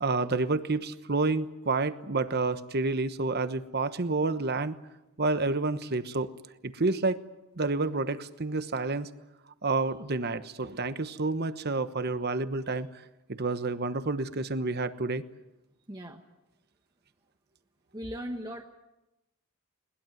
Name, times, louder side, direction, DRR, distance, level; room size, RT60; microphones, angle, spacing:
voice 1, 0.0-4.8 5.2-6.3 6.6-7.2 7.6-9.1 9.6-12.9 13.3-15.2, right 3 dB, 50° right, 12 dB, 1.1 m, -29 dB
voice 2, 15.9-16.2 17.9-18.6, equal, 20° right, 3 dB, 1.3 m, -38 dB
21.5 x 20.0 x 9.3 m, 0.95 s
head